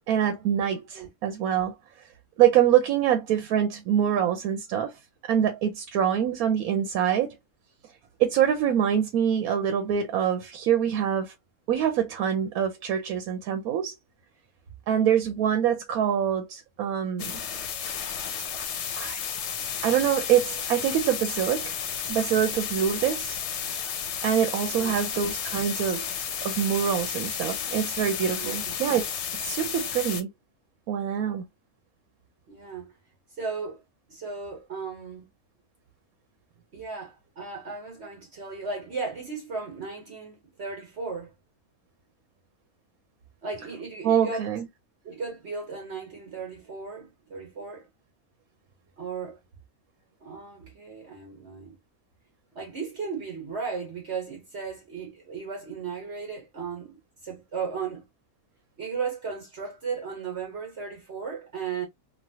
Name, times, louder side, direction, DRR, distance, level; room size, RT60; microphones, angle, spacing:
voice 1, 0.1-1.7 2.4-4.9 5.3-7.3 8.2-11.3 11.7-13.9 14.9-17.4 19.0-19.2 19.8-21.8 22.1-23.4 24.2-26.2 26.4-29.1 29.4-30.3 30.9-31.4 44.0-44.6, right 9 dB, 85° right, 1.1 m, -25 dB
sound 1, 17.2-30.2, left 8 dB, 60° left, 0.8 m, -32 dB
voice 2, 28.4-28.7 32.5-32.9 33.4-33.8 34.1-35.3 36.7-41.3 43.4-44.5 45.0-47.9 49.0-49.4 50.2-51.7 52.5-57.0 57.2-58.0 58.8-61.8, right 5 dB, 50° right, 1.3 m, -35 dB
3.1 x 2.4 x 2.7 m
omnidirectional pair, 1.5 m